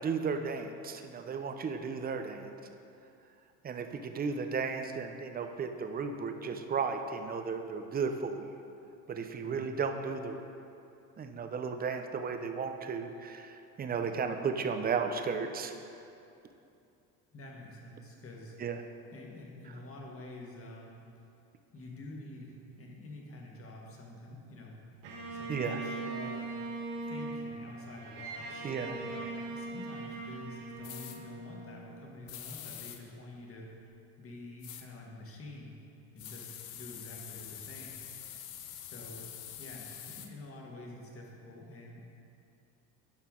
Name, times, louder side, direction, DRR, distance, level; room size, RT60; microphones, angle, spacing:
voice 1, 0.0-2.5 3.6-8.5 9.1-10.4 11.2-15.8 18.6-18.8 25.5-25.8 28.6-28.9, right 5 dB, 20° right, 6 dB, 0.6 m, -34 dB
voice 2, 17.3-18.5 19.1-21.0 21.7-24.8 25.3-26.5 27.1-33.7 34.2-35.7 36.1-38.0 38.8-42.1, left 2 dB, 30° left, -1 dB, 1.7 m, -48 dB
Bowed string instrument, 25.0-32.3, right 3 dB, 70° right, 1.5 m, -40 dB
sound 1, 30.8-31.2 32.3-33.0 34.6-34.9 36.2-40.3, left 11 dB, 60° left, 0.8 m, -45 dB
10.5 x 5.7 x 3.7 m, 2.7 s
supercardioid pair, 90°, 42 cm